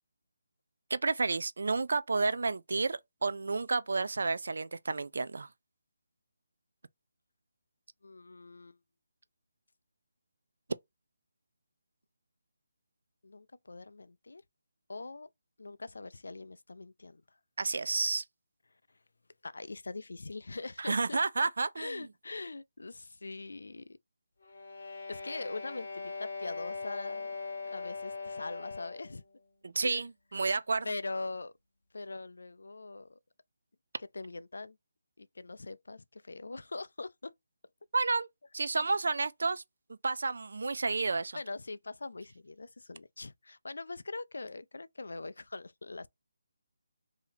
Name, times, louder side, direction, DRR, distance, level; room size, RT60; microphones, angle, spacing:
voice 1, 0.9-5.5 17.6-18.2 20.8-22.1 29.6-30.9 37.9-38.3 38.5-39.6 40.0-41.4, right 3 dB, 60° right, 0.3 m, -31 dB
voice 2, 8.0-8.8 13.2-14.4 14.9-15.3 15.6-17.2 19.4-21.2 21.8-24.0 25.1-27.4 27.6-29.2 29.8-30.0 30.8-31.5 31.9-33.2 34.1-34.8 35.2-37.3 41.3-46.1, left 3 dB, 90° left, 0.3 m, -42 dB
sound 1, 24.4-29.2, left 4 dB, 50° left, 0.8 m, -40 dB
2.8 x 2.8 x 4.1 m
hypercardioid pair, 175°, 0 cm